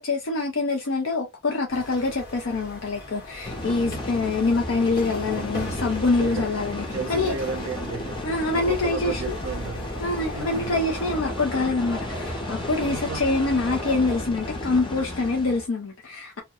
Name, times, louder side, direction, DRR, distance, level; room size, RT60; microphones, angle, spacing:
voice 1, 0.0-7.4 8.2-9.4 10.0-16.4, left 3 dB, 80° left, 0.5 m, -25 dB
sound 1, 1.7-11.2, left 1 dB, 50° left, 1.0 m, -40 dB
sound 2, 3.4-15.6, left 1 dB, 25° left, 0.7 m, -33 dB
voice 2, 3.6-4.1 6.2-6.5 6.9-9.9 10.3-10.8 12.8-13.3, right 4 dB, 75° right, 0.5 m, -33 dB
sound 3, 8.2-14.2, right 1 dB, 15° right, 0.5 m, -42 dB
2.3 x 2.1 x 2.7 m
head